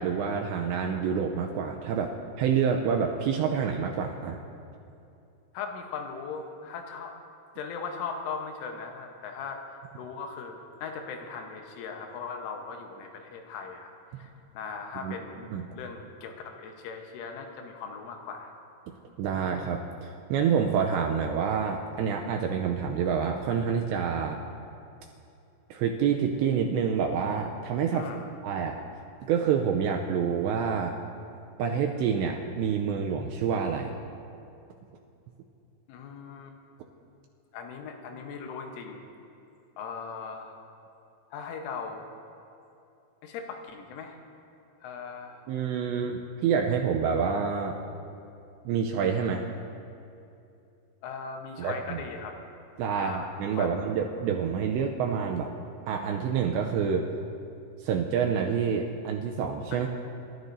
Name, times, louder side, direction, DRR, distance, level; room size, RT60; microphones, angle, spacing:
voice 1, 0.0-2.1 2.4-4.4 15.0-15.1 15.5-15.6 19.2-24.4 25.7-28.1 28.4-28.8 29.3-31.0 31.6-33.9 45.5-47.8 48.7-49.5 51.6-52.0 52.8-55.5 55.9-57.1 57.8-59.9, right 7 dB, 85° right, 2 dB, 2.6 m, -27 dB
voice 2, 5.5-7.2 7.6-9.6 10.0-13.9 14.2-15.5 15.8-18.5 27.9-28.3 35.9-36.6 37.5-39.1 39.8-40.5 41.3-42.1 43.2-44.2 44.8-45.4 51.0-52.4 53.0-53.7 59.7-59.9, left 5 dB, 80° left, 3 dB, 3.5 m, -39 dB
27.5 x 13.0 x 2.7 m, 2.7 s
omnidirectional pair, 5.6 m